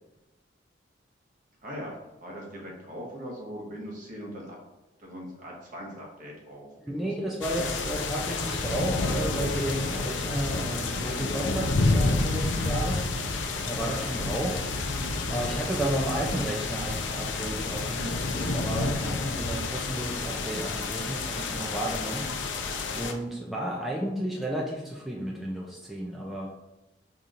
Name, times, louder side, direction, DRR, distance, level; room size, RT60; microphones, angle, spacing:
voice 1, 1.6-4.6 5.0-7.4, equal, 45° right, -2 dB, 0.9 m, -41 dB
voice 2, 6.9-13.1 13.6-14.7 15.3-22.3 22.9-26.7, right 1 dB, ahead, -4 dB, 0.4 m, -33 dB
sound 1, 7.4-23.1, left 3 dB, 85° left, 0.5 m, -29 dB
5.0 x 2.8 x 2.5 m, 1.0 s
head